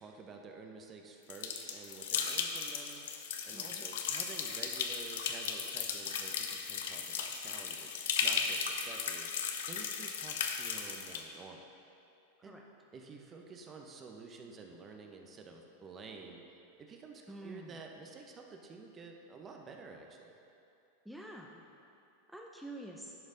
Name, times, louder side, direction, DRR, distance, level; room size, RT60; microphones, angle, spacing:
voice 1, 0.0-3.0 3.5-9.3 9.7-11.6 12.4-12.6 12.9-16.4 16.8-20.3, right 4 dB, 30° right, 2 dB, 0.9 m, -50 dB
sound 1, 1.3-11.2, left 6 dB, 75° left, 0.7 m, -36 dB
voice 2, 3.5-3.8 12.4-12.6 17.3-17.8 21.0-21.6 22.3-23.1, right 1 dB, ahead, -1 dB, 0.6 m, -47 dB
10.5 x 5.3 x 3.9 m, 2.7 s
hypercardioid pair, 110°, 0 cm